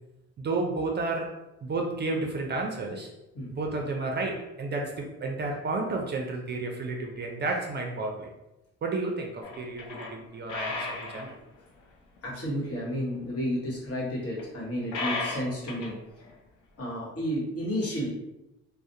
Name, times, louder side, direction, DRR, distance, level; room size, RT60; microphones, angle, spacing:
voice 1, 0.4-3.1 3.5-8.3 8.8-11.4, right 3 dB, 35° right, 1 dB, 0.4 m, -32 dB
sound 1, 9.4-10.1 10.5-11.4 12.2-12.3 14.4-14.5 14.9-16.0 16.2-16.3, left 3 dB, 75° left, 0.6 m, -34 dB
voice 2, 12.2-16.3 16.8-18.1, equal, 50° left, -5 dB, 1.0 m, -32 dB
2.3 x 2.0 x 2.7 m, 0.95 s
cardioid pair, 90°, 30 cm